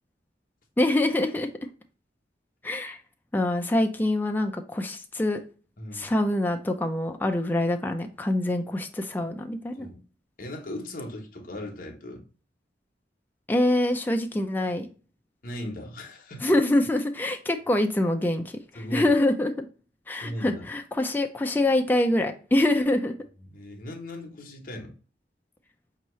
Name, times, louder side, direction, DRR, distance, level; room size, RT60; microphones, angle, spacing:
voice 1, 0.8-1.5 2.6-3.0 3.3-5.4 5.9-9.9 13.5-14.9 16.4-18.6 18.9-19.7 20.1-23.1, left 1 dB, 10° left, 4 dB, 0.3 m, -25 dB
voice 2, 5.8-6.1 9.8-10.0 10.4-12.3 15.4-16.6 18.7-19.1 20.2-20.7 23.4-25.0, left 1 dB, 50° left, 2 dB, 0.9 m, -38 dB
4.5 x 2.8 x 3.0 m, 0.38 s
head